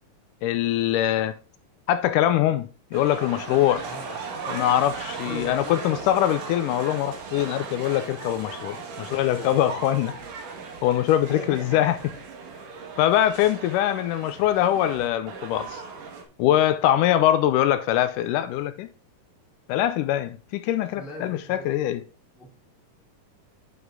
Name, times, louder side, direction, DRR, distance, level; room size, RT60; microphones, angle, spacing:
voice 1, 0.4-1.4 1.9-3.8 4.5-10.1 10.8-12.0 13.0-15.8 16.4-18.9 19.7-22.0, left 12 dB, 80° left, 2.1 m, -23 dB
sound 1, 2.9-16.2, right 5 dB, 70° right, 3.0 m, -37 dB
voice 2, 3.7-4.2 5.1-6.1 9.0-9.6 10.9-11.8 20.9-21.7 22.4-22.5, equal, ahead, 1.5 m, -40 dB
9.6 x 5.5 x 3.7 m
omnidirectional pair, 3.9 m